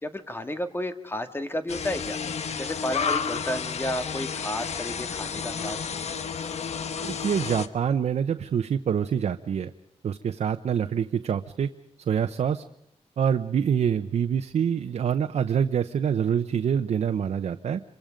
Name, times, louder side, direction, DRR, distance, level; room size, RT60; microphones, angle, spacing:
voice 1, 0.0-2.2 2.6-5.9, left 1 dB, 20° left, 8 dB, 1.8 m, -32 dB
sound 1, 1.7-7.7, left 6 dB, 75° left, 1.3 m, -31 dB
voice 2, 7.0-9.7 10.0-11.7 12.1-12.6 13.2-17.8, right 8 dB, 85° right, 8 dB, 0.8 m, -26 dB
27.0 x 24.0 x 5.2 m, 0.78 s
wide cardioid pair, 120°, 11 cm